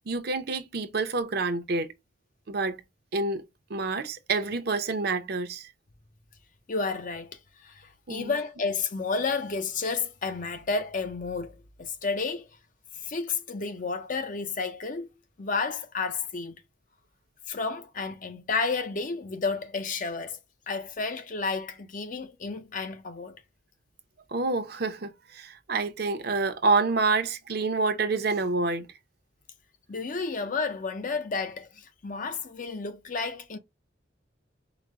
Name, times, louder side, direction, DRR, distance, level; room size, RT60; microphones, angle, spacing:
voice 1, 0.1-1.9 2.5-2.8 3.1-3.4 3.7-5.7 8.1-8.3 24.3-28.9, right 3 dB, 55° right, 0.7 m, -28 dB
voice 2, 6.7-12.5 13.0-15.1 15.4-16.6 17.5-20.4 20.7-23.4 29.9-33.6, left 4 dB, 45° left, 0.6 m, -31 dB
5.0 x 2.1 x 3.4 m
head